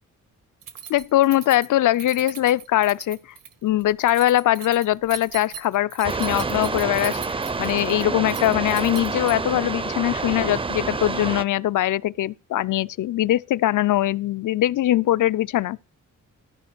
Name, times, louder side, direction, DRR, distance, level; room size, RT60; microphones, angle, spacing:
Keys jangling, 0.6-9.6, right 8 dB, 90° right, 1.4 m, -40 dB
voice 1, 0.9-3.2 3.6-15.8, left 14 dB, 75° left, 0.5 m, -22 dB
sound 1, 6.0-11.4, right 4 dB, 15° right, 0.4 m, -28 dB
13.0 x 5.1 x 5.5 m
wide cardioid pair, 135°, 32 cm